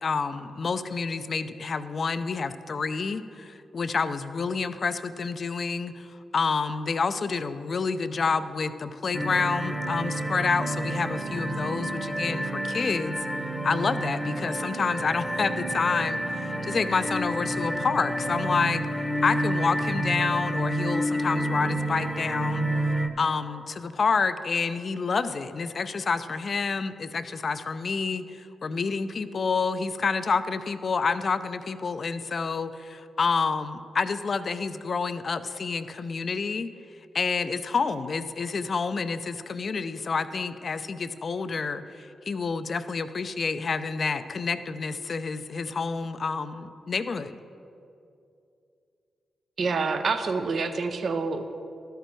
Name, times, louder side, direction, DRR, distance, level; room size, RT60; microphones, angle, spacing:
voice 1, 0.0-13.2 13.6-18.9 19.2-22.7 23.2-36.7 37.1-47.4, left 5 dB, 55° left, 12 dB, 0.4 m, -28 dB
Polyflute pad, 9.1-23.1, right 1 dB, ahead, 0.9 m, -29 dB
voice 2, 49.6-51.6, right 4 dB, 60° right, 8 dB, 0.7 m, -27 dB
12.5 x 6.8 x 4.6 m, 2.6 s
supercardioid pair, 40°, 0 cm